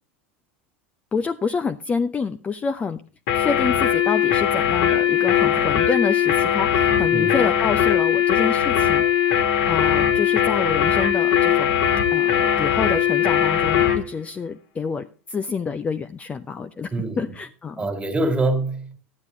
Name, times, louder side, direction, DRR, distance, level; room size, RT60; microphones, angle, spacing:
voice 1, 1.1-3.0 3.3-11.8 12.1-17.9, left 5 dB, 20° left, 0.6 m, -28 dB
sound 1, 3.3-14.0, left 10 dB, 55° left, 1.8 m, -20 dB
voice 2, 7.1-7.5 16.9-17.3 17.8-19.0, right 2 dB, 15° right, 2.2 m, -25 dB
13.0 x 9.8 x 3.5 m
figure-of-eight pair, 80°, 6 cm